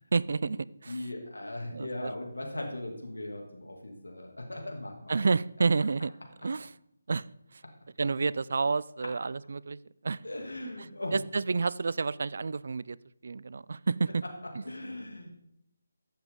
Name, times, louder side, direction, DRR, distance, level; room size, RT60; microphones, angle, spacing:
voice 1, 0.1-0.9 1.7-2.1 5.1-6.1 6.4-6.7 7.1-7.2 8.0-9.8 10.0-10.2 11.1-13.0 13.2-14.2, right 4 dB, 60° right, 20 dB, 0.4 m, -29 dB
voice 2, 0.9-5.2 10.2-11.1 14.4-15.4, left 1 dB, 90° left, 1 dB, 2.5 m, -39 dB
14.5 x 7.2 x 3.7 m, 0.79 s
figure-of-eight pair, 155°, 0 cm